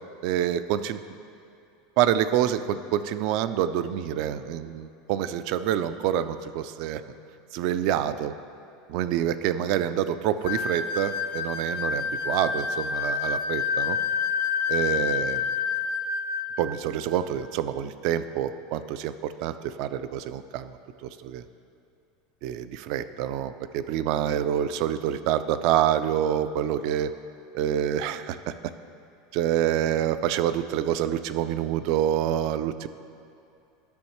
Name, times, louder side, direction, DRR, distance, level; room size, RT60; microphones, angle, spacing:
voice 1, 0.2-1.0 2.0-7.0 7.5-8.3 8.9-14.0 14.7-15.5 16.6-20.8 21.0-21.4 22.4-27.1 27.5-28.5 29.3-32.9, right 10 dB, 55° right, 12 dB, 0.3 m, -27 dB
sound 1, 10.4-16.5, left 6 dB, 80° left, 0.7 m, -28 dB
11.5 x 6.3 x 3.0 m, 2.6 s
supercardioid pair, 145°, 0 cm